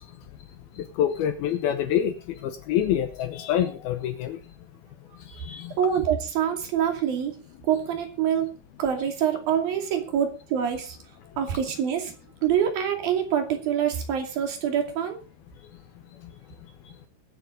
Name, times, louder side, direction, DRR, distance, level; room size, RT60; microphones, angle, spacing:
voice 1, 1.0-2.2 2.4-4.4 5.4-5.7, left 10 dB, 80° left, 8 dB, 2.2 m, -26 dB
voice 2, 5.8-7.4 7.6-8.5 8.8-11.0 11.4-12.1 12.4-15.2, right 9 dB, 50° right, 4 dB, 3.9 m, -25 dB
22.0 x 8.4 x 3.9 m, 0.30 s
omnidirectional pair, 5.7 m